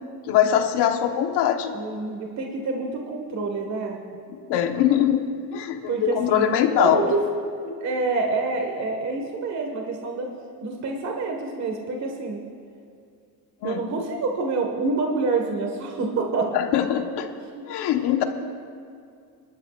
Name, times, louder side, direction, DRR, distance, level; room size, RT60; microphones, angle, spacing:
voice 1, 0.3-1.8 4.3-5.2 5.5-7.1 13.6-13.9 16.5-17.3 17.6-18.2, left 10 dB, 85° left, 5 dB, 1.2 m, -22 dB
voice 2, 1.7-4.0 5.9-6.5 6.7-7.2 7.6-10.3 10.6-12.4 13.6-16.5, right 3 dB, 45° right, 1 dB, 1.6 m, -27 dB
25.5 x 12.5 x 2.5 m, 2.3 s
cardioid pair, 150°, 39 cm